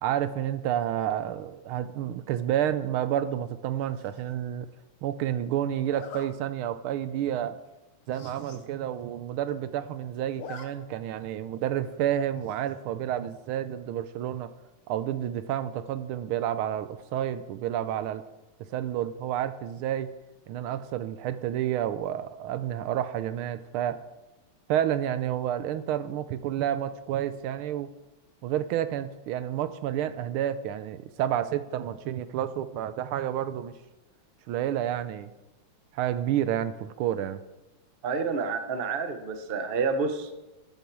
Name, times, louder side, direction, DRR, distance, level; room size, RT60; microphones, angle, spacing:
voice 1, 0.0-4.7 5.0-7.6 8.1-14.5 14.9-18.2 18.7-20.1 20.5-24.0 24.7-27.9 28.4-33.7 34.5-35.3 35.9-37.4, right 11 dB, 85° right, 13 dB, 1.5 m, -30 dB
Zipper (clothing), 4.0-4.3 5.9-6.3 6.8-7.0 7.3-7.4 7.7-7.8 8.0-8.7 9.0-9.1 9.3-9.8 10.2-10.7 11.0-11.1 12.4-12.8, left 6 dB, 80° left, 2.0 m, -45 dB
voice 2, 38.0-40.4, right 4 dB, 40° right, 8 dB, 0.8 m, -29 dB
13.0 x 9.2 x 4.7 m, 1.0 s
omnidirectional pair, 2.4 m